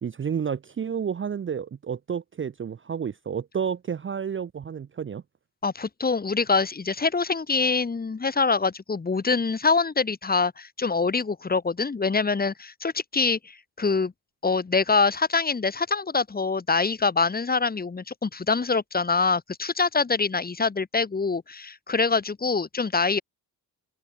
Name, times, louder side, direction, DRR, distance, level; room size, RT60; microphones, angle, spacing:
voice 1, 0.0-5.2, right 7 dB, 30° right, 0.7 m, -30 dB
voice 2, 5.6-14.1 14.4-23.2, left 4 dB, 25° left, 1.7 m, -25 dB
cardioid pair, 130°, 39 cm